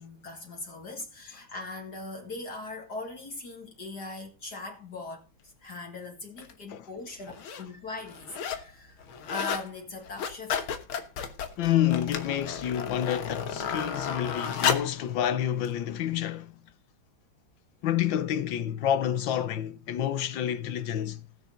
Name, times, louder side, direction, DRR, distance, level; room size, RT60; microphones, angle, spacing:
voice 1, 0.0-10.7, left 3 dB, 50° left, 2.4 m, -40 dB
sound 1, 6.4-6.5 7.2-7.6 8.0-8.7 9.0-9.7 10.0-15.0 15.7-15.8, left 7 dB, 85° left, 2.1 m, -32 dB
voice 2, 11.6-16.5 17.8-21.3, left 10 dB, 70° left, 1.6 m, -28 dB
19.0 x 6.6 x 3.8 m
omnidirectional pair, 2.2 m